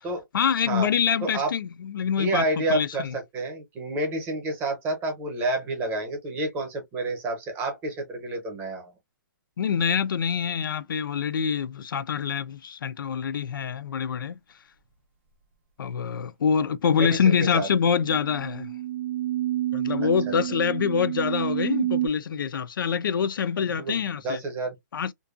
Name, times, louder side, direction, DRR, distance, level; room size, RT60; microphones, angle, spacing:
voice 1, 0.3-3.1 9.6-14.4 15.8-18.7 19.7-24.4 24.9-25.1, left 7 dB, 90° left, 0.4 m, -25 dB
voice 2, 1.2-1.5 2.2-8.9 17.0-17.7 23.7-24.7, right 2 dB, 15° right, 0.8 m, -29 dB
sound 1, 17.7-22.1, right 14 dB, 35° right, 0.4 m, -29 dB
2.6 x 2.2 x 2.4 m
hypercardioid pair, 160°, 11 cm